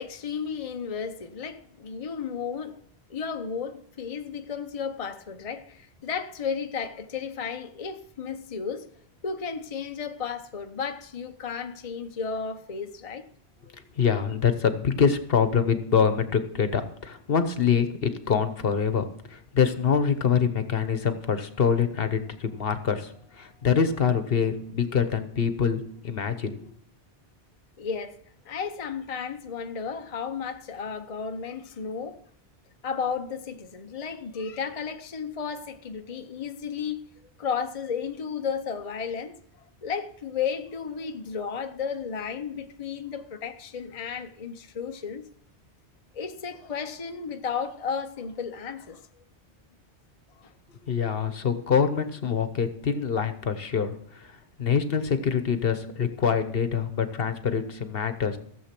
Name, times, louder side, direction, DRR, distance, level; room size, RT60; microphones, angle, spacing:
voice 1, 0.0-2.8 3.1-8.9 9.2-13.3 27.8-28.2 28.4-32.2 32.8-37.0 37.4-39.4 39.8-45.3 46.1-49.2 50.4-50.5, left 6 dB, 35° left, 0.8 m, -33 dB
voice 2, 13.7-26.6 50.8-58.4, left 6 dB, 60° left, 1.2 m, -25 dB
16.0 x 7.5 x 5.9 m
omnidirectional pair, 1.1 m